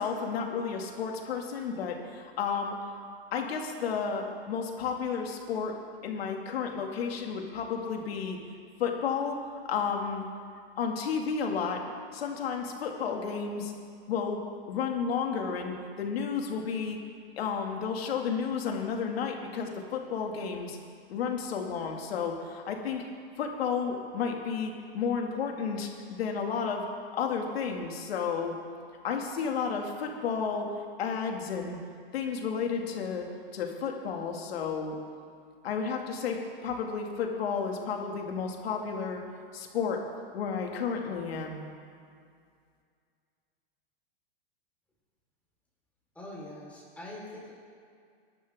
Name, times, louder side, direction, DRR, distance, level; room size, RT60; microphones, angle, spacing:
voice 1, 0.0-3.1 3.3-5.8 6.0-8.4 8.8-9.4 9.7-10.2 10.8-11.8 12.1-13.7 14.1-14.4 14.7-17.0 17.4-20.8 21.1-23.0 23.4-26.9 27.1-28.6 29.0-30.7 31.0-31.8 32.1-35.0 35.6-39.2 39.5-40.0 40.3-41.6, left 6 dB, 75° left, 2 dB, 2.3 m, -32 dB
voice 2, 46.1-47.5, left 1 dB, 5° left, -6 dB, 4.2 m, -43 dB
23.0 x 11.5 x 3.6 m, 2.3 s
supercardioid pair, 150°, 31 cm